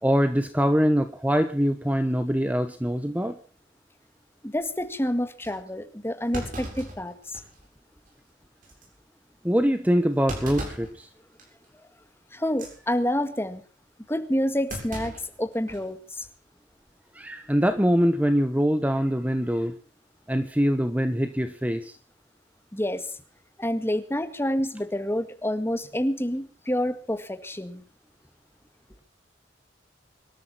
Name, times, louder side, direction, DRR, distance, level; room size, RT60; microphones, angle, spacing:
voice 1, 0.0-3.4 9.4-11.1 17.1-19.7 20.3-22.0, equal, 10° right, 9 dB, 1.1 m, -23 dB
voice 2, 4.4-7.4 12.3-13.6 14.1-16.3 22.7-23.2 23.6-27.8, left 1 dB, 15° left, 9 dB, 1.8 m, -28 dB
Thump thud, 4.6-4.9 5.4-5.5 6.3-7.7 8.1-8.2 8.6-8.9 10.3-10.9 11.4-11.7 12.4-12.7 14.7-15.9 16.2-16.3 17.5-17.8, right 1 dB, 45° right, 7.8 m, -37 dB
25.5 x 13.5 x 4.3 m, 0.40 s
head